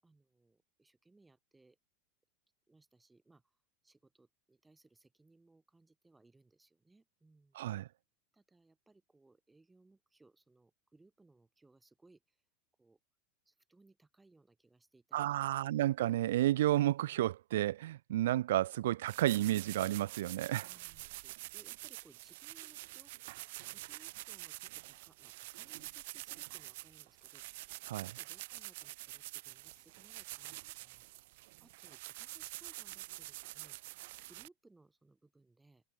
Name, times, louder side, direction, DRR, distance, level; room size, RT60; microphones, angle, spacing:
voice 1, 0.0-1.8 2.7-7.8 8.3-12.5 12.8-13.0 13.4-15.8 20.4-23.1 23.7-35.8, right 3 dB, 5° right, 7.8 m, -66 dB
voice 2, 7.5-7.9 15.1-20.7 27.9-28.1, right 14 dB, 80° right, 1.2 m, -31 dB
sound 1, 19.1-34.5, right 21 dB, 55° right, 3.3 m, -47 dB
supercardioid pair, 175°, 0 cm